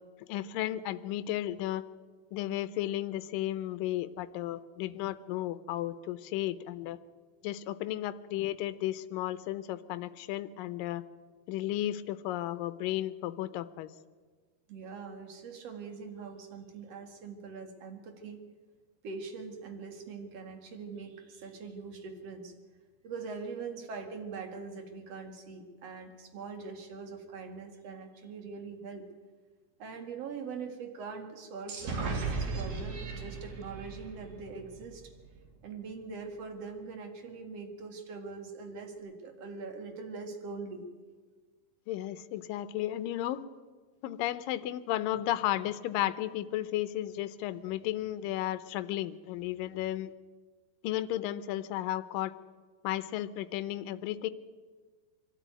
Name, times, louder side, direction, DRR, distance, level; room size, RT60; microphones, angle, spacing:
voice 1, 0.3-1.8 2.3-7.0 7.4-11.0 11.5-13.9 41.9-43.4 44.0-50.1 50.8-52.3 52.8-54.3, left 13 dB, 75° left, 14 dB, 2.2 m, -34 dB
voice 2, 14.7-18.4 19.0-22.5 23.0-29.0 29.8-35.0 35.6-40.9, right 4 dB, 50° right, 5 dB, 2.6 m, -42 dB
sound 1, 31.7-35.4, right 4 dB, 65° right, 4.5 m, -37 dB
23.5 x 12.5 x 9.3 m, 1.5 s
omnidirectional pair, 4.5 m